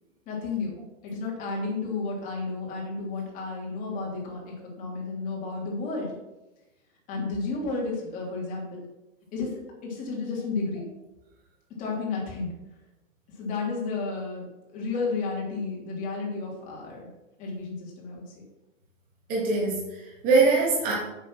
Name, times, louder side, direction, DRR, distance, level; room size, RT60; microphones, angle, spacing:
voice 1, 0.3-6.1 7.1-8.8 9.3-10.9 11.8-12.5 13.4-14.4 14.7-17.1 17.4-18.2, left 3 dB, 20° left, -3 dB, 2.9 m, -32 dB
voice 2, 19.3-20.9, right 3 dB, 20° right, -5 dB, 2.7 m, -23 dB
8.5 x 7.4 x 6.1 m, 1.0 s
hypercardioid pair, 165°, 39 cm